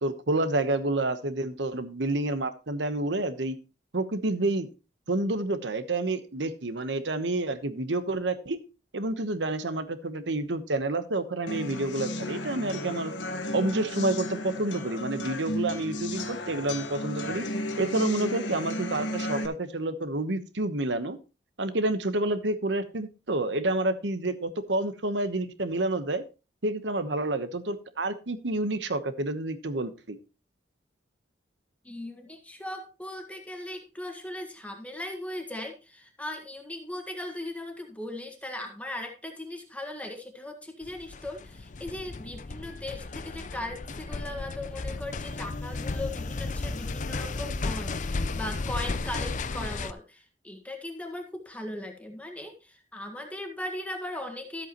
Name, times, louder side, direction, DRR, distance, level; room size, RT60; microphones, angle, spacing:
voice 1, 0.0-3.6 3.9-4.7 5.1-8.6 8.9-13.1 13.5-17.4 17.8-21.2 21.6-26.2 26.6-30.2, right 2 dB, 75° right, 11 dB, 1.1 m, -29 dB
sound 1, 11.5-19.5, left 1 dB, 85° left, 1.4 m, -34 dB
voice 2, 31.8-54.7, left 1 dB, 10° left, 4 dB, 1.7 m, -38 dB
sound 2, 40.8-49.9, left 3 dB, 45° left, 0.6 m, -34 dB
13.0 x 8.1 x 3.0 m, 0.31 s
head